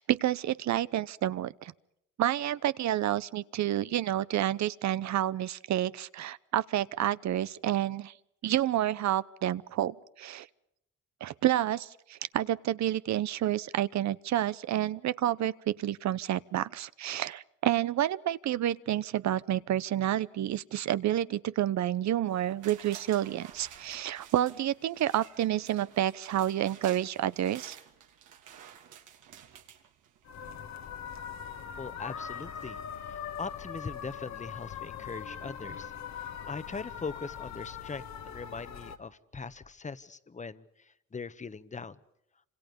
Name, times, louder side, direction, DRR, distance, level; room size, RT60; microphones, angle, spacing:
voice 1, 0.0-1.7 2.2-8.1 8.4-10.5 11.2-27.8, right 12 dB, 65° right, 0.8 m, -29 dB
sound 1, 22.3-30.4 30.8-30.9, right 9 dB, 85° right, 3.0 m, -52 dB
sound 2, 30.2-39.0, left 8 dB, 65° left, 1.8 m, -41 dB
voice 2, 31.8-32.8 33.1-35.9 36.5-42.0, left 4 dB, 25° left, 1.3 m, -41 dB
27.5 x 26.5 x 5.3 m
cardioid pair, 90°, 30 cm